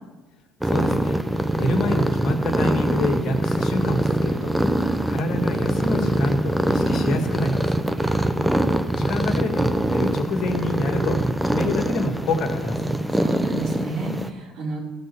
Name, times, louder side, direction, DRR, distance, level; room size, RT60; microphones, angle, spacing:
voice 1, 0.6-1.2 1.6-4.6 5.1-7.8 9.0-11.2 11.5-13.0, left 2 dB, 50° left, 4 dB, 2.0 m, -27 dB
sound 1, 0.6-14.3, right 1 dB, 5° right, 0.8 m, -23 dB
voice 2, 8.0-8.6 13.1-14.8, right 2 dB, 65° right, -2 dB, 3.6 m, -32 dB
15.5 x 5.5 x 7.0 m, 1.2 s
hypercardioid pair, 70°, 0 cm